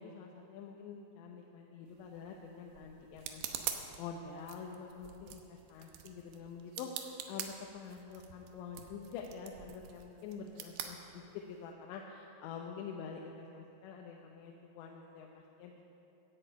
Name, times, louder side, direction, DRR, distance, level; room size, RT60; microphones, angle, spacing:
voice 1, 0.0-3.4 3.7-15.9, left 6 dB, 90° left, 1 dB, 3.2 m, -47 dB
sound 1, 1.9-11.7, right 9 dB, 75° right, 2.9 m, -46 dB
14.0 x 9.9 x 8.5 m, 2.8 s
omnidirectional pair, 5.0 m